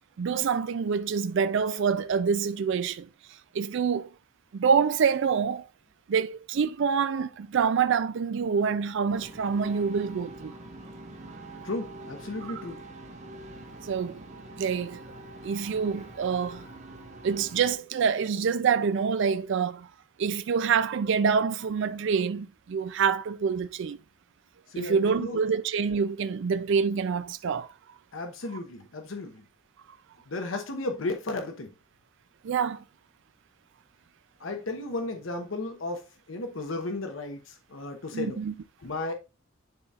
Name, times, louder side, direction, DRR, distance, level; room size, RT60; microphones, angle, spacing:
voice 1, 0.2-4.1 4.5-5.7 6.1-10.5 12.5-12.6 13.8-14.2 14.6-15.0 15.4-16.7 17.2-19.9 20.2-24.0 24.8-27.7 32.4-32.8 38.1-38.5, right 6 dB, 65° right, 0.4 m, -26 dB
sound 1, 9.1-17.7, right 1 dB, 35° right, 1.3 m, -44 dB
voice 2, 11.6-12.8 24.7-25.4 28.1-29.4 30.3-31.7 34.4-38.4 38.8-39.1, left 2 dB, 80° left, 0.9 m, -34 dB
10.5 x 4.1 x 2.4 m
head